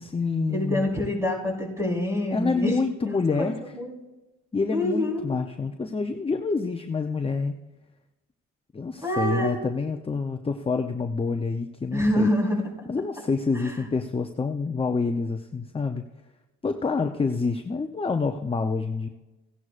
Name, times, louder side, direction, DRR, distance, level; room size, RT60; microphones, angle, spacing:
voice 1, 0.0-0.9 2.3-3.6 4.5-7.5 8.7-12.3 12.9-16.1 16.6-19.1, left 4 dB, 20° left, 6 dB, 0.7 m, -27 dB
voice 2, 0.5-2.7 3.4-4.0 4.7-5.2 9.0-9.6 11.9-12.9 13.5-13.7, left 1 dB, 10° right, -2 dB, 4.2 m, -26 dB
16.5 x 10.5 x 2.5 m, 1.0 s
cardioid pair, 90°, 30 cm